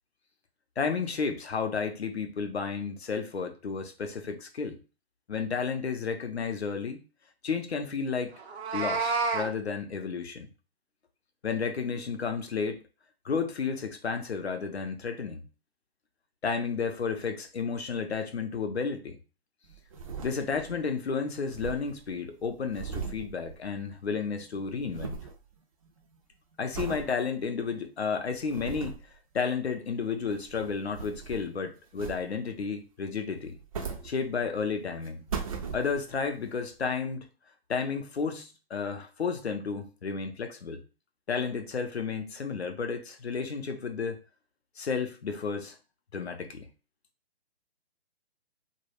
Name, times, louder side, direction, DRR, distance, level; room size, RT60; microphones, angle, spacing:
voice 1, 0.8-4.8 5.3-7.0 7.4-8.3 8.7-10.5 11.4-12.8 13.2-15.5 16.4-19.2 20.2-25.2 26.6-29.0 29.3-33.6 34.0-35.2 35.7-37.3 37.7-40.8 41.3-44.2 44.8-45.7 46.1-46.7, left 5 dB, 85° left, 0.6 m, -32 dB
Meow, 8.4-9.5, right 4 dB, 85° right, 0.6 m, -29 dB
sound 1, 19.7-20.8 21.1-21.2 21.3-24.1 24.4-25.4 25.9-26.2 26.7-27.1 27.6-27.7 28.3-29.1 30.1-31.6 32.0-32.6 33.4-34.6 35.0-36.2 36.8-36.9, right 6 dB, 35° right, 0.4 m, -39 dB
2.2 x 2.1 x 3.2 m
figure-of-eight pair, 140°, 32 cm